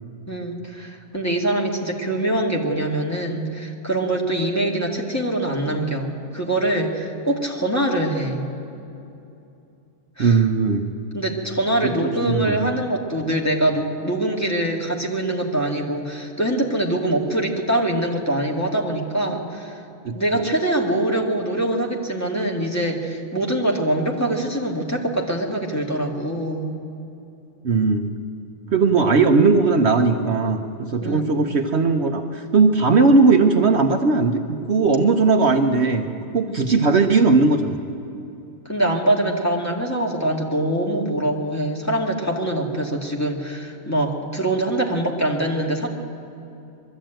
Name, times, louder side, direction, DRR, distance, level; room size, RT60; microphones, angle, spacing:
voice 1, 0.3-8.4 10.2-10.4 11.1-19.8 20.1-26.8 31.0-31.4 36.5-36.7 38.7-45.9, right 1 dB, 10° left, -1 dB, 2.0 m, -24 dB
voice 2, 10.2-10.9 11.8-12.7 20.0-20.1 27.6-28.1 28.7-36.1 36.3-37.8, right 4 dB, 55° right, 5 dB, 1.1 m, -18 dB
21.5 x 13.5 x 9.0 m, 2.7 s
omnidirectional pair, 1.4 m